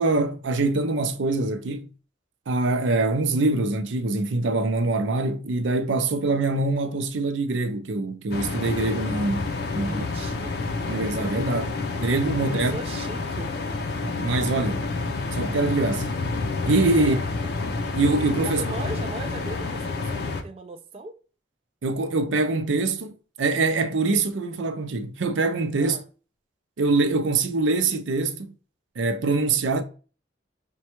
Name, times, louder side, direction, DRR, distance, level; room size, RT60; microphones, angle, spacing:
voice 1, 0.0-1.9 2.5-10.1 10.8-12.7 14.0-14.8 15.3-16.1 16.6-17.2 18.0-18.6 21.8-26.0 26.8-28.5 29.0-29.8, right 3 dB, 80° right, 0.5 m, -24 dB
sound 1, 8.3-20.4, left 3 dB, 55° left, 0.5 m, -29 dB
voice 2, 9.8-10.7 12.5-13.5 17.0-17.2 18.4-21.2 25.8-26.1, right 2 dB, 30° right, 0.3 m, -38 dB
5.2 x 2.2 x 2.9 m
head